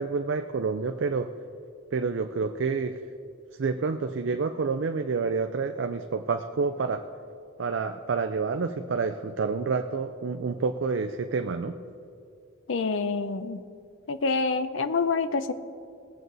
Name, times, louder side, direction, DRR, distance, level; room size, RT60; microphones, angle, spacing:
voice 1, 0.0-1.3 1.9-3.0 3.6-7.0 7.6-11.8, right 4 dB, 65° right, 7 dB, 0.4 m, -28 dB
voice 2, 12.7-13.6 14.1-15.5, left 4 dB, 70° left, 12 dB, 0.6 m, -27 dB
19.5 x 7.8 x 4.0 m, 2.4 s
head